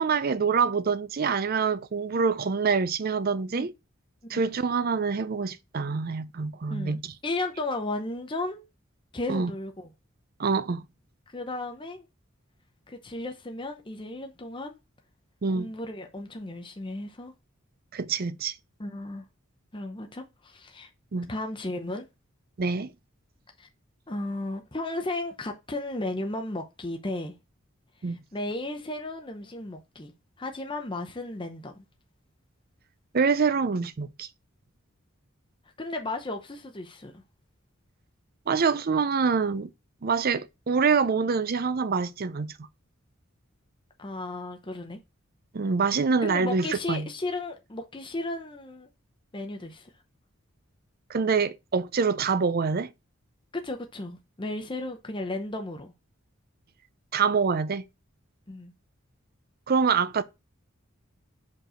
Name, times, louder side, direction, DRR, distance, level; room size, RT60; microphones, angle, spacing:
voice 1, 0.0-3.7 4.3-7.1 9.3-9.5 10.4-10.8 15.4-15.7 17.9-18.5 21.1-21.3 22.6-22.9 28.0-28.2 33.1-34.3 38.5-39.7 40.0-42.5 45.5-47.1 51.1-52.9 57.1-57.8 59.7-60.2, right 5 dB, 45° right, 0.5 m, -25 dB
voice 2, 6.7-8.6 9.1-9.9 11.3-12.0 12.9-14.8 15.5-17.3 18.8-19.2 19.7-20.9 21.3-22.1 23.6-23.7 24.1-27.3 28.1-30.1 30.4-31.8 35.8-37.2 44.0-45.0 46.2-48.9 49.3-49.9 53.5-55.9 58.5-58.7, left 2 dB, 25° left, 0.8 m, -34 dB
5.3 x 4.6 x 5.0 m
head